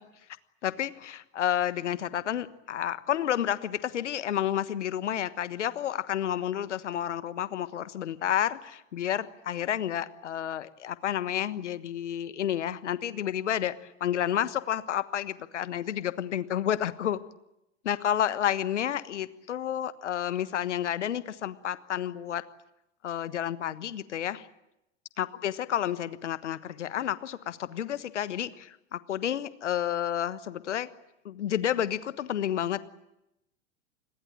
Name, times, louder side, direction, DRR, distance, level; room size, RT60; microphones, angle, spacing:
voice 1, 0.6-13.7 14.0-17.2 17.8-22.4 23.0-24.5 25.2-30.9 31.2-32.8, left 10 dB, 65° left, 15 dB, 1.4 m, -30 dB
27.0 x 21.0 x 8.7 m, 0.86 s
figure-of-eight pair, 90°, 38 cm